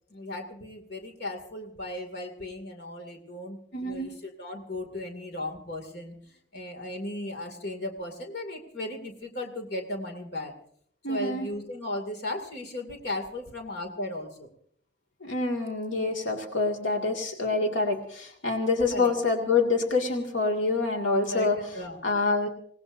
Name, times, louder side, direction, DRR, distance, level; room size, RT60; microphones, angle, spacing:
voice 1, 0.1-10.5 11.1-14.5 18.9-19.1 21.3-22.0, left 1 dB, 60° left, 4 dB, 2.4 m, -36 dB
voice 2, 3.7-4.1 11.0-11.5 15.2-21.6 22.0-22.5, left 3 dB, 80° left, 1 dB, 2.1 m, -26 dB
26.5 x 18.5 x 2.6 m, 0.63 s
head